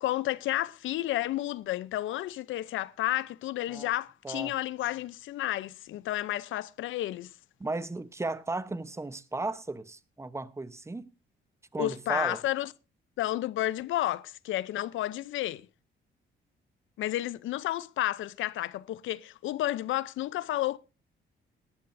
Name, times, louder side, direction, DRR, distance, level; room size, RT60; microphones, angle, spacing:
voice 1, 0.0-7.3 11.8-12.7 13.2-15.7 17.0-20.8, left 14 dB, 75° left, 0.6 m, -31 dB
voice 2, 7.6-11.1 11.7-12.4, right 2 dB, 15° right, 0.8 m, -35 dB
18.5 x 11.5 x 2.6 m
cardioid pair, 90°, 20 cm